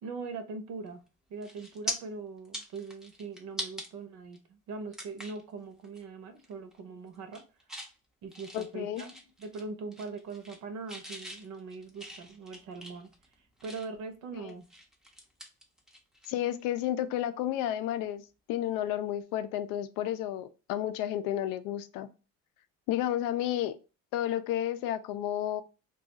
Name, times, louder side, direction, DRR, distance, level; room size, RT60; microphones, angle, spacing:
voice 1, 0.0-1.0 1.3-7.4 8.2-13.1 13.6-14.6, right 4 dB, 60° right, 0.7 m, -41 dB
sound 1, 0.9-1.1 1.4-1.9 2.4-3.9 4.3-4.4 4.9-5.4 5.8-6.0 6.4-6.8 7.1-7.9 8.3-9.6 9.9-10.6 10.9-14.0 14.5-16.3 16.6-16.8 18.7-18.8, equal, ahead, 0.4 m, -42 dB
voice 2, 8.5-9.0 14.4-14.5 16.3-18.2 18.5-22.1 22.9-23.8 24.1-25.6, left 12 dB, 80° left, 0.5 m, -31 dB
2.3 x 2.3 x 3.9 m
cardioid pair, 135°, 33 cm